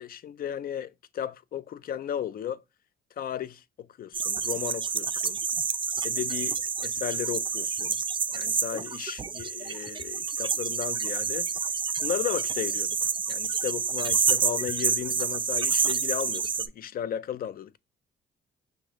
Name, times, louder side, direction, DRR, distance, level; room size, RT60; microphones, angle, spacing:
voice 1, 0.0-2.6 3.2-5.4 6.0-8.0 8.3-11.5 12.0-17.8, left 10 dB, 50° left, 0.4 m, -35 dB
sound 1, 4.1-16.7, right 6 dB, 25° right, 0.4 m, -28 dB
5.9 x 2.6 x 2.9 m
cardioid pair, 90°, 20 cm